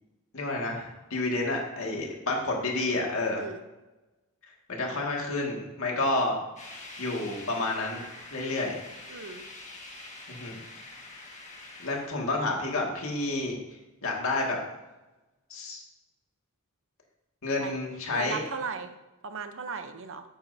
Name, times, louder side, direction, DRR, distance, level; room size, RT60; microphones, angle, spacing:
voice 1, 0.3-3.4 4.7-6.4 7.0-8.0 8.3-8.7 10.3-10.6 11.8-13.6 14.0-14.6 15.5-15.8 17.4-18.4, left 2 dB, 65° left, -1 dB, 2.1 m, -29 dB
sound 1, 6.6-13.2, left 2 dB, 35° left, 1.8 m, -46 dB
voice 2, 9.1-9.4 17.6-17.8 18.1-18.9 19.2-20.2, right 5 dB, 60° right, 8 dB, 0.8 m, -36 dB
11.0 x 8.9 x 2.7 m, 1.1 s
head